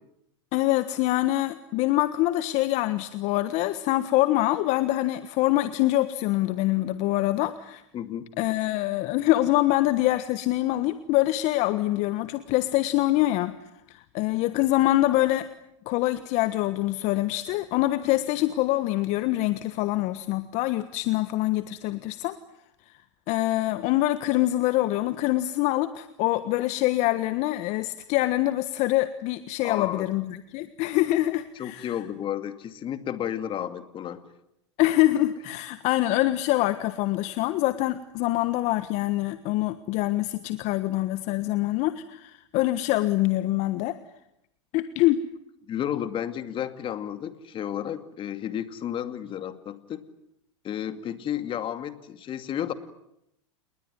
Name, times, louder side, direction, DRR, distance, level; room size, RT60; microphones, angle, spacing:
voice 1, 0.5-7.8 8.4-13.5 13.9-15.5 15.9-22.4 23.3-31.9 34.8-44.0 44.7-45.2, left 16 dB, 50° left, 12 dB, 1.4 m, -25 dB
voice 2, 7.9-8.3 29.6-30.1 31.6-34.2 45.7-50.0 50.6-52.7, left 10 dB, 35° left, 10 dB, 2.4 m, -32 dB
29.5 x 20.5 x 9.6 m, 0.81 s
hypercardioid pair, 105°, 15 cm